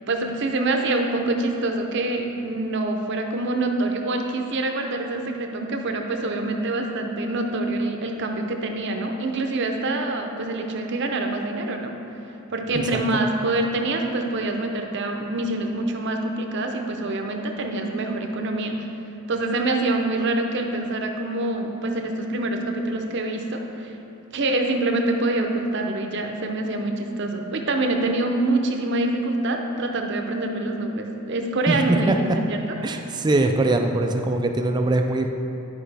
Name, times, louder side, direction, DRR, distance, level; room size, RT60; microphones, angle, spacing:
voice 1, 0.1-11.9 12.5-18.8 19.3-23.9 24.3-32.8, right 2 dB, 60° right, 3 dB, 0.7 m, -25 dB
voice 2, 31.7-32.2 32.8-35.3, right 2 dB, 20° right, 5 dB, 0.3 m, -22 dB
10.0 x 4.9 x 3.3 m, 2.9 s
head